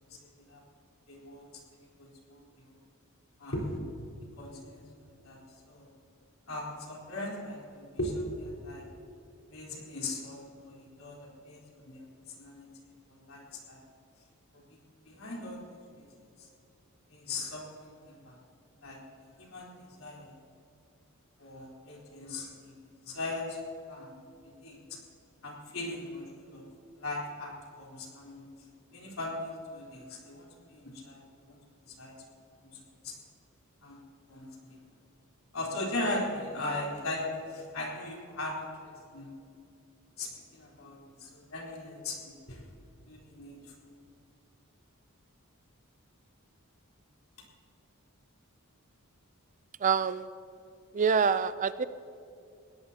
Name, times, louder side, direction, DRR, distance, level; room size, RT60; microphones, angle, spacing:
voice 1, 1.1-1.5 2.0-2.4 3.4-3.8 4.4-4.8 5.2-5.4 5.7-5.9 6.5-8.9 9.5-12.7 13.1-13.8 14.5-14.6 15.1-16.1 16.4-16.5 17.1-18.4 18.8-19.0 19.4-19.7 20.0-20.3 21.4-22.7 23.1-23.6 23.9-24.2 24.6-24.8 25.4-26.7 27.0-28.5 28.9-31.6 32.0-32.2 32.7-32.8 33.0-33.1 33.8-34.0 34.3-34.8 35.5-39.3 40.2-42.6 43.1-43.6, left 2 dB, 75° left, -3 dB, 3.9 m, -39 dB
voice 2, 49.8-50.2 51.0-51.8, right 6 dB, 35° right, 14 dB, 0.4 m, -26 dB
21.5 x 17.0 x 2.9 m, 2.6 s
head